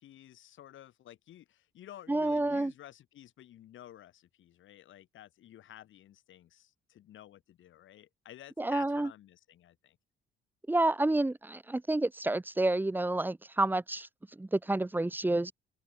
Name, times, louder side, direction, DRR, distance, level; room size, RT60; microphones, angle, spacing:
voice 1, 0.0-10.0, left 12 dB, 75° left, 5.9 m, -53 dB
voice 2, 2.1-2.7 8.6-9.1 10.7-14.1 14.4-15.5, right 2 dB, 10° right, 0.8 m, -29 dB
open air
cardioid pair, 90°, 20 cm